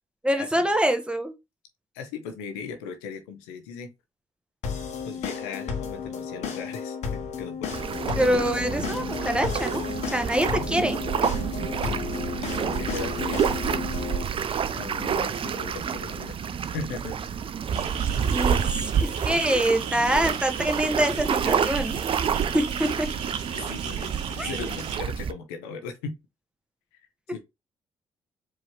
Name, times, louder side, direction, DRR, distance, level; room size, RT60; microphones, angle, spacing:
voice 1, 0.2-1.3 8.1-9.8 10.1-11.0 18.3-21.9 22.5-23.1 24.4-24.5, right 1 dB, 10° right, 1.1 m, -25 dB
voice 2, 1.9-3.9 5.0-7.7 12.4-13.4 14.7-16.4 16.7-17.2 23.5-26.1 27.3-27.4, left 5 dB, 85° left, 0.7 m, -38 dB
sound 1, 4.6-14.2, left 6 dB, 65° left, 1.1 m, -33 dB
sound 2, 7.7-25.3, right 7 dB, 45° right, 0.5 m, -28 dB
sound 3, 17.7-25.0, right 7 dB, 80° right, 0.8 m, -36 dB
4.7 x 2.9 x 3.0 m
hypercardioid pair, 45°, 12 cm